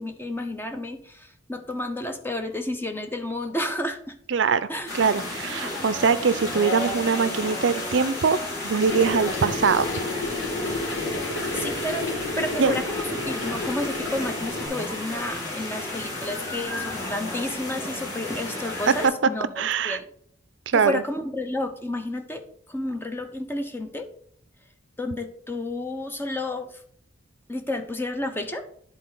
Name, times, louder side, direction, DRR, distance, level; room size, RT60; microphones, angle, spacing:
voice 1, 0.0-4.1 4.7-4.9 11.5-12.1 12.4-20.1 20.8-24.1 25.0-26.8 27.5-28.6, left 1 dB, 10° left, 5 dB, 0.6 m, -31 dB
voice 2, 4.3-4.7 4.9-8.4 8.6-9.9 12.6-12.8 18.9-19.0 19.6-20.0 20.7-21.0, right 5 dB, 65° right, 14 dB, 0.5 m, -22 dB
sound 1, 4.9-19.1, left 2 dB, 55° left, 3.3 m, -32 dB
sound 2, 8.8-14.7, left 2 dB, 75° left, 2.6 m, -31 dB
10.0 x 4.2 x 3.8 m, 0.62 s
head